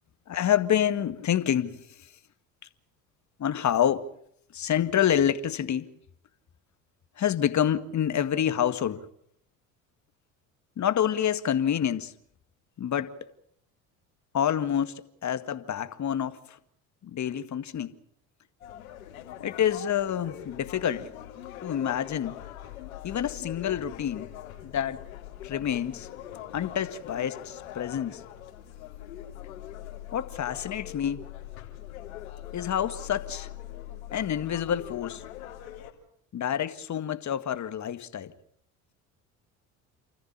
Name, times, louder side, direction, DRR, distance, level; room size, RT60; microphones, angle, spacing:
voice 1, 0.3-2.1 3.4-4.1 4.5-5.9 7.2-9.1 10.8-12.1 12.8-13.1 14.3-16.6 17.0-17.9 19.4-21.1 21.6-22.4 23.0-24.3 24.6-25.1 25.4-26.1 26.5-28.2 30.1-31.3 32.5-33.5 34.1-35.2 36.3-38.3, left 9 dB, 45° left, 1.9 m, -28 dB
sound 1, 18.6-35.9, left 12 dB, 90° left, 3.5 m, -42 dB
29.0 x 14.5 x 8.8 m
hypercardioid pair, 70°, 40 cm